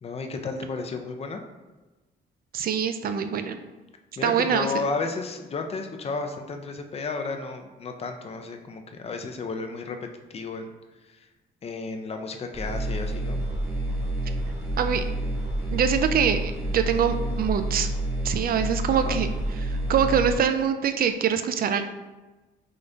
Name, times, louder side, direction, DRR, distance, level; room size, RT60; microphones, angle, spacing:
voice 1, 0.0-1.4 4.2-10.0 10.3-10.7 11.1-11.3 11.6-13.4 18.9-19.2, left 4 dB, 30° left, 5 dB, 0.5 m, -33 dB
voice 2, 2.5-3.6 4.2-4.8 14.8-15.0 15.7-16.4 16.7-17.9 18.2-19.3 19.6-21.8, right 7 dB, 50° right, 9 dB, 0.4 m, -24 dB
sound 1, 12.5-20.3, right 1 dB, 15° right, 0.9 m, -29 dB
3.7 x 2.6 x 3.3 m, 1.2 s
cardioid pair, 90°, 20 cm